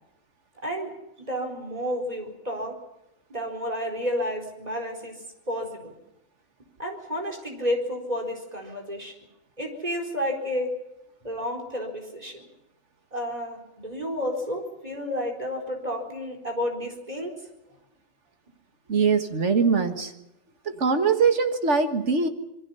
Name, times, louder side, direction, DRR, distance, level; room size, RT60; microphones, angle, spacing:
voice 1, 1.2-2.8 3.3-5.2 5.5-6.0 6.8-9.1 9.6-10.7 11.2-12.5 13.1-17.3, equal, 30° right, 1 dB, 4.4 m, -31 dB
voice 2, 18.9-20.1 20.7-22.3, right 5 dB, 60° right, 6 dB, 2.1 m, -22 dB
27.5 x 22.0 x 5.7 m, 0.88 s
omnidirectional pair, 1.4 m